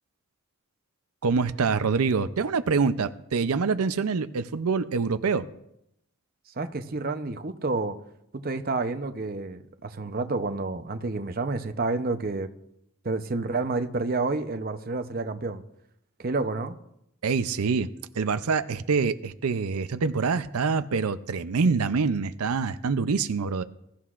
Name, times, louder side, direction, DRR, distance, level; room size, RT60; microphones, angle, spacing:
voice 1, 1.2-5.5 17.2-17.9 18.1-23.6, right 5 dB, 90° right, 0.5 m, -25 dB
voice 2, 6.6-7.9 8.3-12.5 13.0-15.6 16.2-16.7, right 3 dB, 45° right, 0.7 m, -29 dB
22.0 x 13.0 x 2.5 m
head